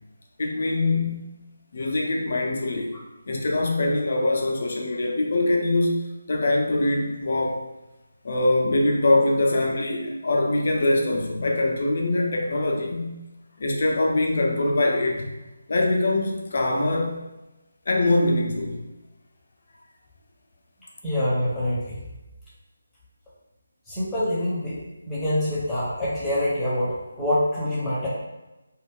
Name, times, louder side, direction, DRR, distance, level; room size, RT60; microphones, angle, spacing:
voice 1, 0.4-1.3 1.7-2.9 3.3-6.0 6.3-7.6 8.2-13.2 13.6-15.3 15.7-17.2 17.9-18.8, left 2 dB, 45° left, 0 dB, 0.5 m, -23 dB
voice 2, 21.0-22.0 23.9-24.8 25.1-28.1, left 1 dB, 5° left, -10 dB, 0.7 m, -25 dB
2.3 x 2.1 x 3.4 m, 1.0 s
figure-of-eight pair, 155°, 0 cm